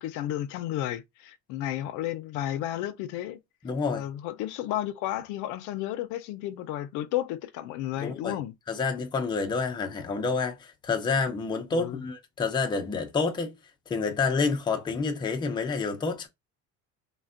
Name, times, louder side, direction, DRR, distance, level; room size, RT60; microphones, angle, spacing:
voice 1, 0.0-3.4 3.9-8.5 11.7-12.0, left 13 dB, 75° left, 0.5 m, -32 dB
voice 2, 3.6-4.1 8.0-8.4 8.7-13.5 13.9-16.3, left 4 dB, 15° left, 0.4 m, -28 dB
3.2 x 2.2 x 2.4 m
cardioid pair, 145°, 31 cm